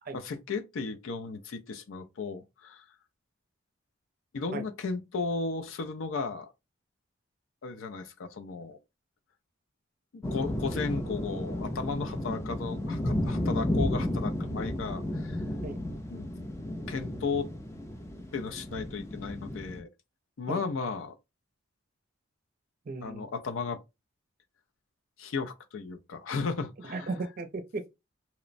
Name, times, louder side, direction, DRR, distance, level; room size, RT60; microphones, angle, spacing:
voice 1, 0.1-2.8 4.3-6.5 7.6-8.8 10.1-15.4 16.1-16.3 16.9-17.5 18.3-19.9 20.4-21.1 23.0-23.8 25.2-27.1, left 4 dB, 80° left, 0.4 m, -35 dB
sound 1, 10.2-19.8, left 1 dB, 15° left, 0.3 m, -33 dB
voice 2, 22.9-23.3 26.8-27.9, right 3 dB, 45° right, 0.5 m, -36 dB
2.9 x 2.0 x 2.5 m
head